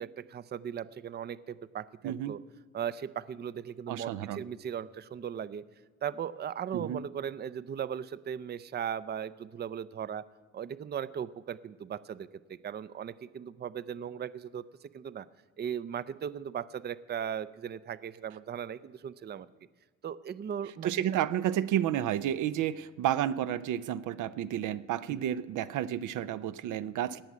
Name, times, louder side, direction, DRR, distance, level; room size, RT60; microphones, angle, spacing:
voice 1, 0.0-2.4 2.7-5.6 6.0-10.2 10.5-14.6 14.9-15.3 15.6-19.5 20.0-20.9 25.1-25.2, right 8 dB, 35° right, 17 dB, 0.5 m, -38 dB
voice 2, 2.0-2.3 3.9-4.4 6.7-7.0 20.8-27.2, right 11 dB, 80° right, 13 dB, 0.6 m, -31 dB
17.5 x 6.2 x 9.3 m, 1.4 s
cardioid pair, 90°, 30 cm